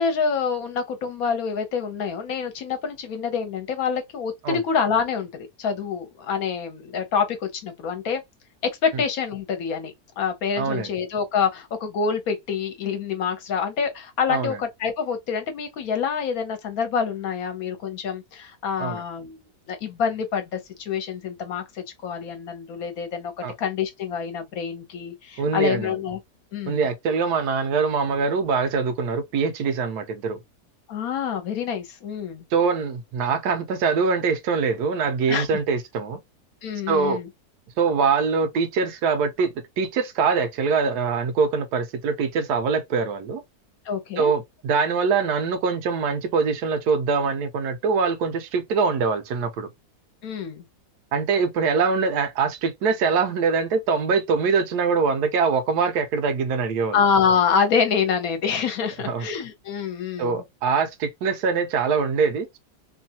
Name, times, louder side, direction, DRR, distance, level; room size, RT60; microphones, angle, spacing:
voice 1, 0.0-8.2 8.8-26.2 26.5-26.8 30.9-32.5 35.3-35.5 36.6-37.3 43.9-44.3 50.2-50.6 56.9-60.4, left 6 dB, 65° left, 1.1 m, -26 dB
voice 2, 10.6-10.9 14.3-14.6 18.8-19.0 23.4-23.5 25.4-26.0 26.7-30.4 32.5-36.2 36.9-37.2 37.8-43.4 44.2-49.7 51.1-57.0 59.1-59.3 60.2-62.6, right 5 dB, 80° right, 1.2 m, -23 dB
3.1 x 2.3 x 2.7 m
omnidirectional pair, 1.7 m